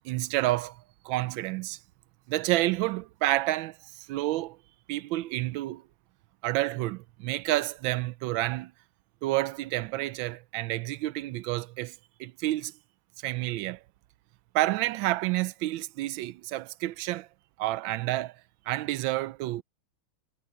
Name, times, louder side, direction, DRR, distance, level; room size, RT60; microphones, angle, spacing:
voice 1, 0.0-1.8 2.3-4.6 4.9-5.8 6.4-8.7 9.2-12.7 13.2-13.8 14.5-17.3 17.6-18.3 18.7-19.6, right 17 dB, 75° right, 1.2 m, -29 dB
omnidirectional pair, 2.3 m